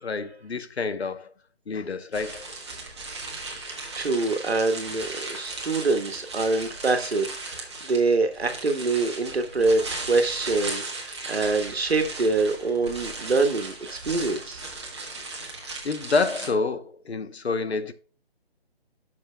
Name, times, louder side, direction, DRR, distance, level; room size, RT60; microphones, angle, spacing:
voice 1, 0.0-1.3 1.7-2.5 15.8-17.9, left 4 dB, 80° left, 1.1 m, -28 dB
sound 1, 2.1-16.5, right 3 dB, 25° right, 1.5 m, -37 dB
voice 2, 3.9-14.6, right 3 dB, 75° right, 1.7 m, -25 dB
10.0 x 6.5 x 2.3 m
hypercardioid pair, 175°, 32 cm